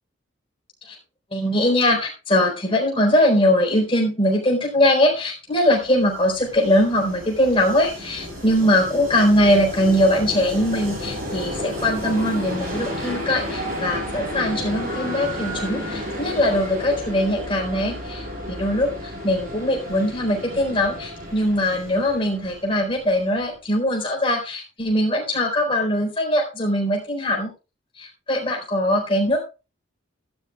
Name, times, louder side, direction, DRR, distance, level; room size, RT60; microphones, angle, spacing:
voice 1, 1.3-18.9 19.2-27.5 28.0-29.5, left 1 dB, 25° left, 0 dB, 4.2 m, -21 dB
Train, 5.8-23.6, left 1 dB, 45° right, 6.2 m, -32 dB
14.0 x 11.5 x 2.4 m, 0.29 s
head